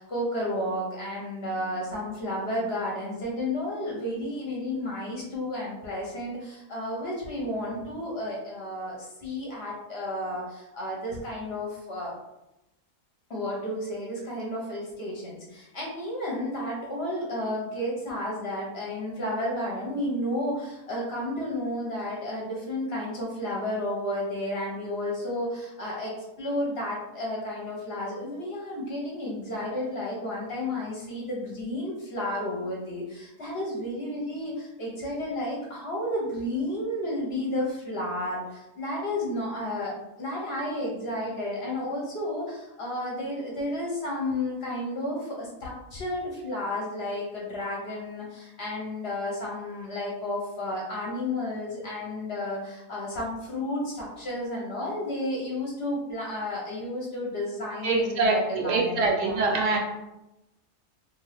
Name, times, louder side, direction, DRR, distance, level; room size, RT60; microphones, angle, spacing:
voice 1, 0.0-12.1 13.3-59.4, left 1 dB, 55° left, -3 dB, 0.8 m, -32 dB
voice 2, 57.8-59.8, right 3 dB, 70° right, 0 dB, 0.9 m, -24 dB
2.6 x 2.6 x 3.2 m, 0.93 s
omnidirectional pair, 1.5 m